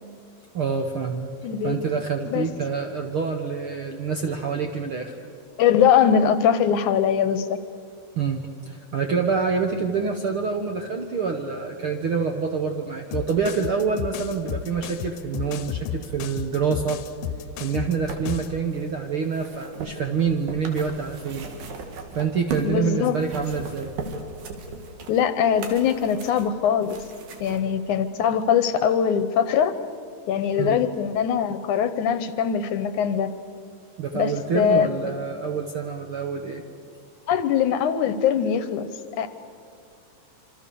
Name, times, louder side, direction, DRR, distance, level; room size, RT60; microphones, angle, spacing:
voice 1, 0.5-1.3 1.6-5.1 8.1-17.0 17.6-21.5 22.1-23.9 30.6-30.8 34.0-36.6, right 5 dB, 60° right, 4 dB, 1.4 m, -26 dB
voice 2, 1.4-1.8 2.3-2.5 5.6-7.6 22.6-23.2 25.1-27.0 27.4-29.7 30.3-33.3 34.1-34.9 37.3-38.9 39.2-39.3, left 8 dB, 70° left, 11 dB, 2.1 m, -22 dB
sound 1, 13.1-18.6, left 10 dB, 90° left, 2.6 m, -33 dB
sound 2, 17.6-22.8 23.1-27.6 28.4-28.5, right 3 dB, 85° right, 3.9 m, -38 dB
26.5 x 26.0 x 6.9 m, 2.3 s
omnidirectional pair, 4.0 m